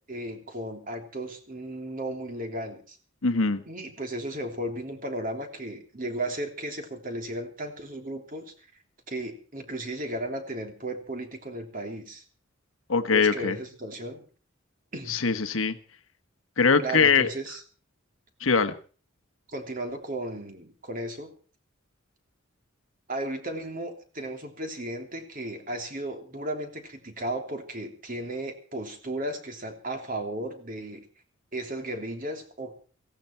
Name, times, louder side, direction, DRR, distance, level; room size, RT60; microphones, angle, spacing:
voice 1, 0.0-3.0 3.7-8.5 9.1-12.2 13.1-14.2 14.9-15.2 16.8-17.6 19.5-21.3 23.1-31.1 31.5-32.7, right 1 dB, 40° right, 5 dB, 3.1 m, -35 dB
voice 2, 3.2-3.6 12.9-13.6 15.1-15.8 16.6-17.3 18.4-18.7, left 5 dB, 90° left, 9 dB, 1.3 m, -22 dB
18.0 x 16.0 x 4.5 m, 0.39 s
head